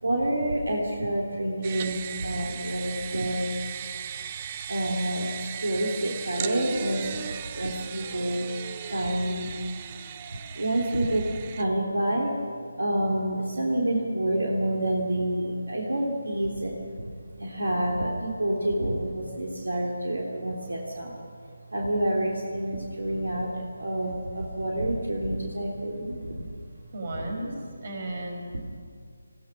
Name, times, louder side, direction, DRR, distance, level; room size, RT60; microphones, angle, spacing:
voice 1, 0.0-3.5 4.7-9.5 10.5-11.3 11.5-12.3 12.8-17.1 17.4-21.2 21.7-26.5, right 1 dB, 70° right, -1 dB, 3.4 m, -28 dB
sound 1, 1.6-11.6, right 9 dB, 25° right, 0.8 m, -37 dB
voice 2, 26.9-27.5 27.8-28.7, right 1 dB, 40° right, 2 dB, 5.5 m, -35 dB
28.0 x 17.0 x 6.2 m, 2.2 s
figure-of-eight pair, 155°, 0 cm